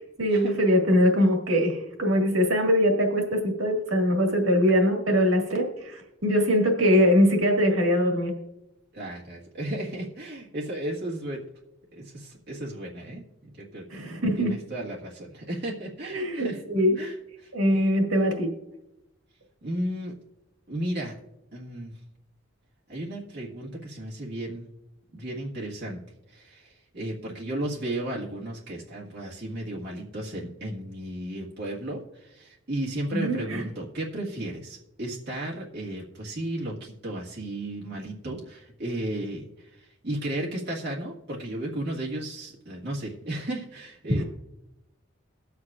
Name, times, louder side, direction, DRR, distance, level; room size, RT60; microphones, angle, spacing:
voice 1, 0.2-8.3 13.9-14.5 16.0-17.0 17.5-18.5 33.1-33.6 44.1-44.2, equal, 90° right, 2 dB, 1.9 m, -22 dB
voice 2, 8.9-11.4 11.9-13.2 13.6-14.0 14.4-16.6 17.0-17.5 19.6-20.1 20.7-21.1 21.5-21.9 22.9-24.7 25.1-26.0 26.3-44.2, right 1 dB, 60° right, -4 dB, 1.7 m, -34 dB
22.5 x 7.9 x 2.4 m, 0.89 s
head